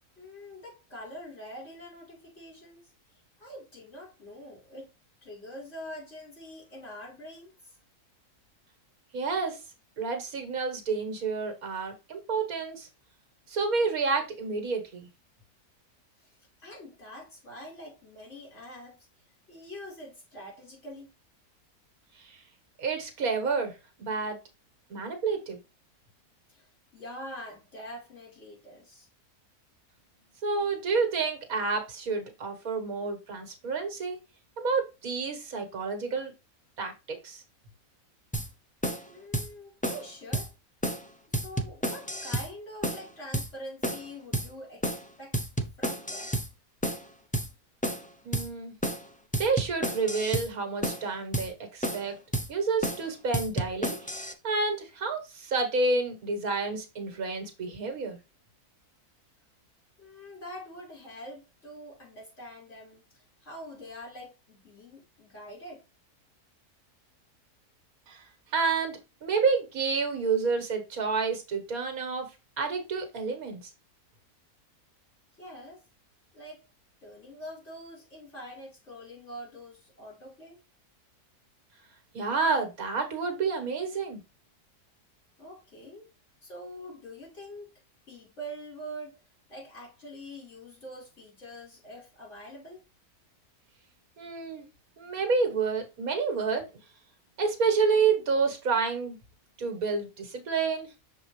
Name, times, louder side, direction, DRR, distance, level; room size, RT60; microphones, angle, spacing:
voice 1, 0.2-4.9 5.2-7.8 16.2-19.1 19.5-21.1 26.5-29.1 39.0-40.5 41.4-45.4 45.8-46.4 60.0-65.8 75.4-75.8 76.3-76.6 77.0-80.6 85.4-86.1 86.4-87.7 88.1-89.2 89.5-92.8, equal, 50° left, 4.6 m, -45 dB
voice 2, 9.1-9.6 10.0-12.9 13.5-15.1 22.2-22.4 22.8-24.4 24.9-25.6 30.4-34.2 34.6-36.3 36.8-37.4 48.2-48.7 49.4-52.1 52.5-58.2 68.1-68.2 68.5-72.3 72.6-73.6 82.1-84.2 94.2-94.7 95.0-96.7 97.4-99.2 99.6-100.9, right 4 dB, 65° right, 1.8 m, -29 dB
sound 1, 38.3-38.5 38.8-39.0 39.3-39.5 39.8-40.1 40.3-40.5 40.8-41.0 41.3-42.5 42.8-43.1 43.3-43.5 43.8-44.1 44.3-44.5 44.8-45.1 45.3-46.5 46.8-47.0 47.3-47.5 47.8-48.1 48.3-48.5 48.8-49.1 49.3-50.5 50.8-51.0 51.3-51.5 51.8-52.1 52.3-52.5 52.8-53.0 53.3-54.3, right 1 dB, 10° left, 0.3 m, -31 dB
6.6 x 4.9 x 3.1 m
omnidirectional pair, 1.6 m